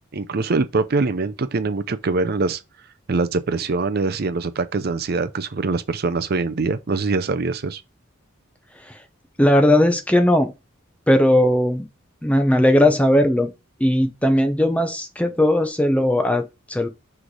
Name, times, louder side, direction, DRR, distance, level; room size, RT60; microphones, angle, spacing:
voice 1, 0.1-2.6 3.1-7.8, right 3 dB, 50° right, 0.5 m, -23 dB
voice 2, 8.7-9.0 9.4-10.5 11.1-11.9 12.2-13.5 13.8-16.9, left 1 dB, 5° left, 0.8 m, -18 dB
6.2 x 3.3 x 4.7 m
head